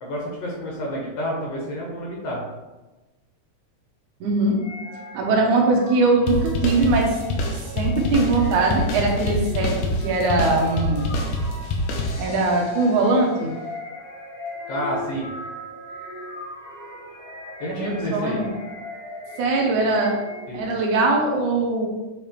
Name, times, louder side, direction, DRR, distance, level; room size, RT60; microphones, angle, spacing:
voice 1, 0.0-2.4 14.7-15.3 17.6-18.4 20.5-20.6, equal, 60° left, -3 dB, 2.2 m, -29 dB
voice 2, 4.2-4.6 5.1-7.2 7.5-11.0 12.2-13.6 17.6-18.5 19.4-20.2 20.5-21.9, right 3 dB, 80° right, 0 dB, 2.5 m, -21 dB
sound 1, 4.6-20.8, left 1 dB, 25° left, 0.9 m, -39 dB
sound 2, 6.3-12.6, left 1 dB, 90° left, 2.5 m, -26 dB
8.4 x 3.4 x 4.4 m, 1.1 s
omnidirectional pair, 3.5 m